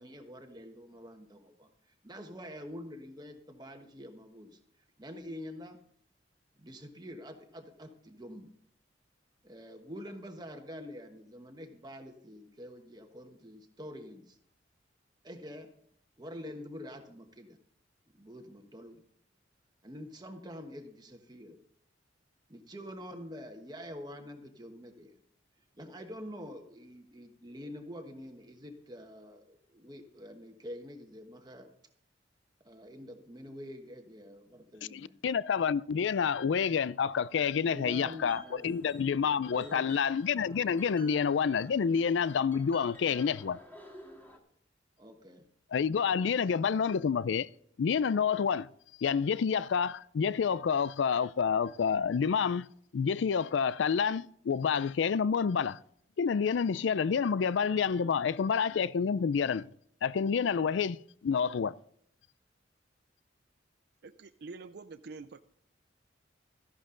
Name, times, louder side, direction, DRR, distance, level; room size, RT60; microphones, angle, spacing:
voice 1, 0.0-1.7 2.0-4.6 5.0-5.8 6.6-8.5 9.4-14.4 15.2-15.7 16.2-17.6 18.1-19.0 19.8-21.6 22.5-25.1 25.8-31.7 32.6-35.2 37.6-38.6 39.5-39.9 45.0-45.4, equal, 20° right, 1.2 m, -46 dB
voice 2, 34.9-43.6 45.7-47.5 47.8-48.7 49.0-52.7 52.9-55.8 56.2-59.7 60.0-61.7, left 6 dB, 70° left, 0.4 m, -28 dB
sound 1, 38.2-44.4, equal, 10° left, 1.8 m, -54 dB
voice 3, 64.0-65.4, right 4 dB, 55° right, 0.5 m, -46 dB
14.0 x 11.5 x 3.8 m
head